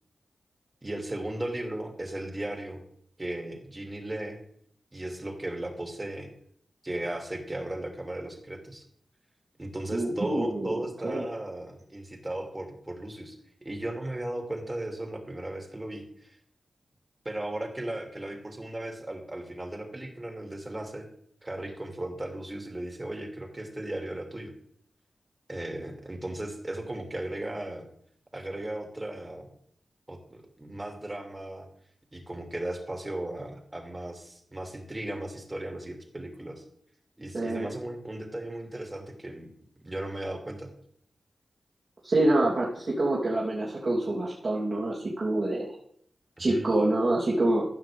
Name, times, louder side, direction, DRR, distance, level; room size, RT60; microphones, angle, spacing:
voice 1, 0.8-2.8 3.2-4.4 4.9-6.3 6.8-8.8 9.6-13.3 13.6-16.4 17.2-21.0 21.4-24.5 25.5-27.8 28.3-29.5 30.1-31.7 32.1-36.6 37.2-39.5 39.8-40.7 46.4-46.7, right 1 dB, 25° right, 3 dB, 2.5 m, -36 dB
voice 2, 9.9-10.7 11.0-11.3 37.3-37.7 42.0-45.7 46.4-47.6, right 1 dB, 55° right, -5 dB, 2.7 m, -26 dB
15.0 x 5.8 x 3.6 m, 0.64 s
cardioid pair, 40°, 0 cm